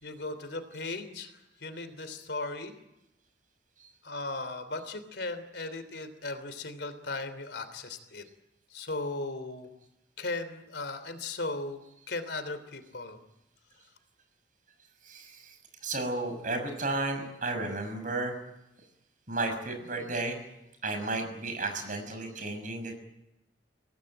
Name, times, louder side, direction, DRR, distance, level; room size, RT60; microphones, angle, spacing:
voice 1, 0.0-1.3 1.6-2.7 4.0-8.2 8.7-9.7 10.2-11.8 12.1-13.2, left 2 dB, 70° left, 10 dB, 3.2 m, -37 dB
voice 2, 15.0-15.6 15.8-18.3 19.3-20.4 20.8-22.9, right 2 dB, 45° right, 6 dB, 6.1 m, -33 dB
25.0 x 17.5 x 9.1 m, 0.89 s
head